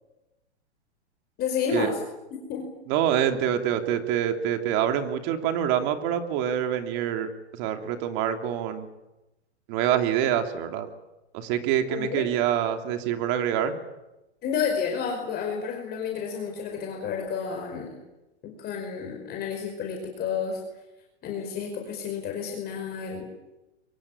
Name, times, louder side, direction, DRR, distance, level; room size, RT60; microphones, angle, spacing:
voice 1, 1.4-2.0 2.3-2.6 11.9-12.2 14.4-17.9 18.4-20.6 21.2-23.3, left 6 dB, 30° left, 1 dB, 5.1 m, -30 dB
voice 2, 2.9-8.9 9.7-10.9 11.3-13.7, right 10 dB, 45° right, 6 dB, 3.0 m, -26 dB
23.5 x 23.5 x 8.7 m, 0.97 s
hypercardioid pair, 135°, 34 cm